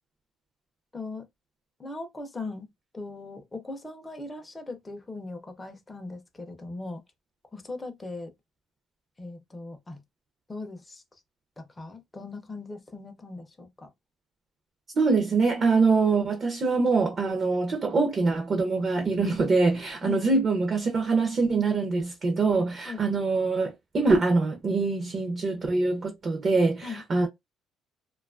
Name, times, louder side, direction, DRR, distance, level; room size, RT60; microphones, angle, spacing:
voice 1, 0.9-1.3 1.8-7.0 7.5-8.3 9.2-10.0 10.5-11.0 11.6-13.9 20.0-20.2 22.9-23.0 26.8-27.0, left 3 dB, 10° left, 0.5 m, -39 dB
voice 2, 14.9-27.3, right 3 dB, 30° right, 0.6 m, -24 dB
2.6 x 2.3 x 2.4 m
cardioid pair, 155°, 0 cm